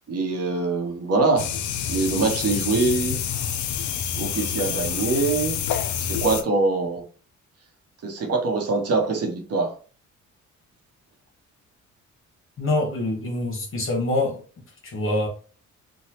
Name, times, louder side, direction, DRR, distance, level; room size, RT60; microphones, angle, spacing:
voice 1, 0.1-1.5 1.9-3.2 4.1-5.6 6.0-7.1 8.0-9.8, right 3 dB, 55° right, 0.9 m, -24 dB
sound 1, 1.4-6.4, left 8 dB, 75° left, 0.5 m, -27 dB
voice 2, 12.6-14.4 14.8-15.3, left 2 dB, 45° left, 1.1 m, -25 dB
3.1 x 2.2 x 2.9 m
cardioid pair, 90°, 30 cm